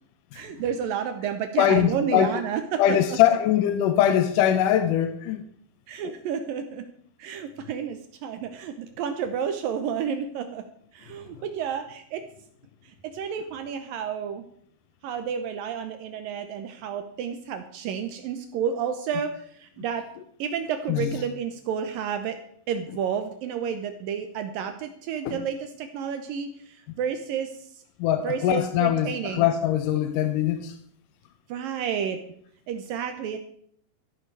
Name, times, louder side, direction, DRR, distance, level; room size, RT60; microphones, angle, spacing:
voice 1, 0.3-3.0 5.9-6.8 7.2-10.6 10.9-12.2 12.8-14.4 15.0-20.0 20.4-22.4 22.7-27.5 28.2-29.5 31.5-32.2 32.7-33.4, right 7 dB, 75° right, 8 dB, 2.5 m, -31 dB
voice 2, 1.6-2.4 2.8-5.4 6.0-6.1 20.9-21.1 25.3-25.4 28.0-30.7, left 11 dB, 75° left, 9 dB, 2.2 m, -22 dB
13.5 x 12.0 x 4.7 m, 0.64 s
omnidirectional pair, 4.3 m